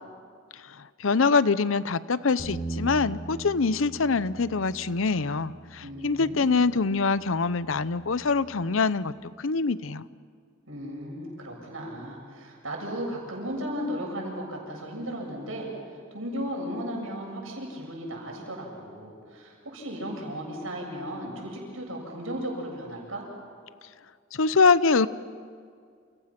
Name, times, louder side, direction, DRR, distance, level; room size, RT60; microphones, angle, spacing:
voice 1, 0.6-10.0 24.3-25.1, left 4 dB, 80° left, 16 dB, 0.7 m, -24 dB
Bass guitar, 2.4-8.6, right 2 dB, 40° left, 6.6 m, -41 dB
voice 2, 5.8-6.7 10.7-15.7 16.1-23.2, equal, 80° right, 0 dB, 7.5 m, -35 dB
29.5 x 29.0 x 6.0 m, 2.1 s
head